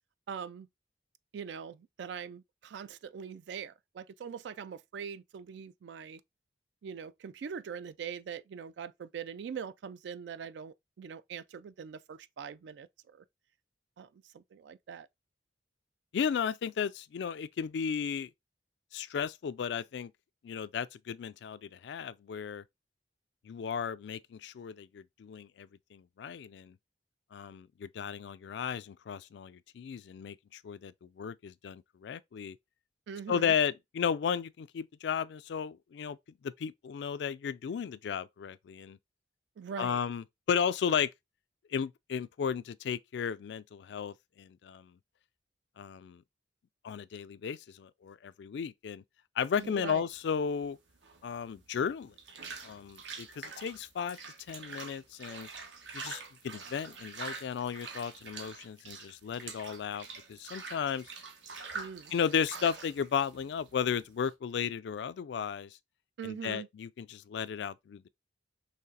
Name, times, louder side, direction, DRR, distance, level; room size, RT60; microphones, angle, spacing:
voice 1, 0.3-0.7 1.3-6.2 6.8-13.2 14.0-15.1 33.1-33.5 39.6-40.0 49.6-50.1 61.7-62.1 66.2-66.7, right 7 dB, 70° right, 0.3 m, -42 dB
voice 2, 16.1-18.3 18.9-20.1 20.4-22.6 23.4-26.8 27.3-32.6 33.3-36.2 36.4-39.0 39.8-41.1 41.7-44.9 45.8-46.2 46.8-49.0 49.4-50.8 51.2-52.1 52.6-54.2 54.5-55.5 55.9-61.1 62.1-65.8 66.2-68.1, left 7 dB, 65° left, 0.3 m, -34 dB
sound 1, 49.6-64.3, right 4 dB, 85° right, 1.2 m, -46 dB
5.7 x 3.2 x 2.7 m
head